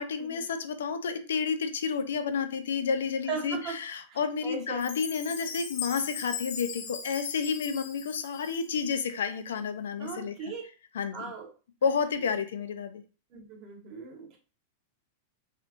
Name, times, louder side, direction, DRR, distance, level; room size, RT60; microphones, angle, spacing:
voice 1, 0.0-10.3 10.9-11.3 11.8-13.0, left 6 dB, 85° left, 9 dB, 0.5 m, -30 dB
voice 2, 3.3-3.7 4.1-4.9 10.0-10.6 11.1-11.5 13.3-14.4, right 5 dB, 45° right, 1 dB, 1.3 m, -38 dB
Chime, 4.8-9.0, left 6 dB, 60° left, 1.1 m, -39 dB
3.2 x 3.0 x 2.5 m, 0.36 s
hypercardioid pair, 120°, 0 cm